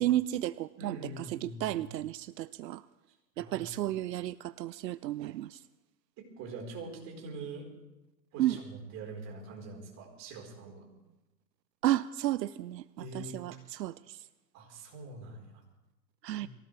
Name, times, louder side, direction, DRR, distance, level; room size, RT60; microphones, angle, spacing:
voice 1, 0.0-2.8 3.4-5.6 8.4-8.6 11.8-12.8 13.1-14.2 16.2-16.5, right 14 dB, 80° right, 17 dB, 0.6 m, -32 dB
voice 2, 0.8-1.9 3.3-3.7 6.2-7.7 8.3-10.8 13.0-13.4 14.5-15.6 16.4-16.5, right 3 dB, 30° right, 0 dB, 4.6 m, -44 dB
23.0 x 17.0 x 3.4 m, 1.0 s
hypercardioid pair, 140°, 49 cm